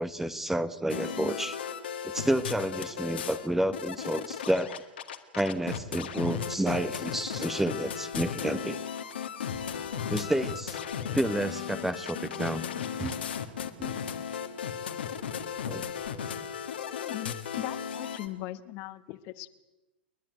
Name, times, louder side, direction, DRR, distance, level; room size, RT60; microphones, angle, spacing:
voice 1, 0.0-1.6 2.0-4.8 5.3-8.8 10.1-10.8 11.1-12.7 13.0-13.2 13.8-13.9 15.7-15.9, right 1 dB, 5° right, 13 dB, 0.9 m, -30 dB
sound 1, 0.9-3.5 3.7-18.3, left 8 dB, 75° left, 1.8 m, -35 dB
voice 2, 16.9-19.5, left 17 dB, 45° left, 13 dB, 1.1 m, -39 dB
29.5 x 11.0 x 9.2 m, 1.1 s
figure-of-eight pair, 95°, 6 cm